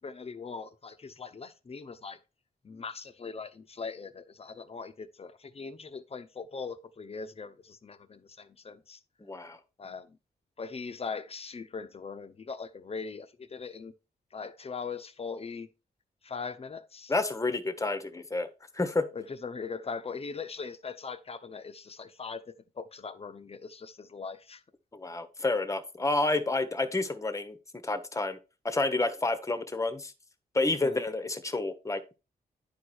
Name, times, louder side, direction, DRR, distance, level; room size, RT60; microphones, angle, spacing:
voice 1, 0.0-2.2 2.6-9.0 9.8-10.2 10.6-13.9 14.3-15.7 16.2-17.1 19.1-24.6 30.8-31.0, left 5 dB, 35° left, 0.9 m, -40 dB
voice 2, 9.2-9.6 17.1-18.5 18.7-19.1 24.9-27.6 27.8-28.4 28.6-30.1 30.5-32.2, left 2 dB, 20° left, 1.1 m, -29 dB
10.5 x 4.8 x 4.4 m
cardioid pair, 90°, 16 cm